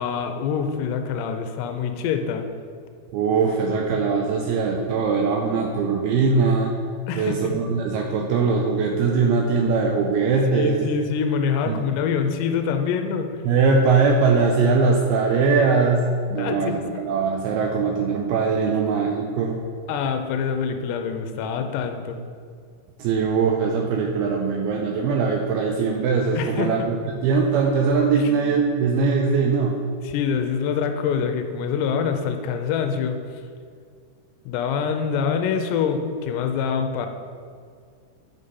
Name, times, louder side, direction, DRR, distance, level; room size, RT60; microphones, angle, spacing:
voice 1, 0.0-2.5 7.1-7.6 8.1-8.3 10.5-13.4 16.4-16.8 18.7-18.8 19.9-22.2 26.4-26.9 28.2-28.5 30.0-33.2 34.5-37.1, left 6 dB, 85° left, 6 dB, 2.7 m, -25 dB
voice 2, 3.1-6.7 7.2-10.9 11.7-11.8 13.4-19.6 23.0-29.8, right 4 dB, 85° right, 1 dB, 2.3 m, -21 dB
8.6 x 5.3 x 5.5 m, 2.2 s
omnidirectional pair, 5.1 m